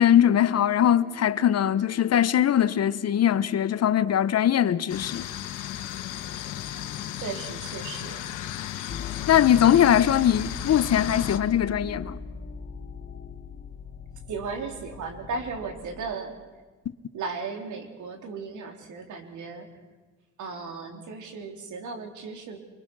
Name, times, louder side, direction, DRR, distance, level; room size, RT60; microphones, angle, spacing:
voice 1, 0.0-5.3 9.3-12.2, left 10 dB, 55° left, 1.0 m, -21 dB
sound 1, 4.9-11.4, left 11 dB, 90° left, 1.5 m, -35 dB
voice 2, 7.1-8.2 14.3-16.4 17.1-19.8 20.4-22.6, right 4 dB, 75° right, 3.7 m, -36 dB
sound 2, 8.9-16.1, left 5 dB, 40° left, 1.6 m, -39 dB
25.5 x 23.5 x 6.2 m
cardioid pair, 90°, 30 cm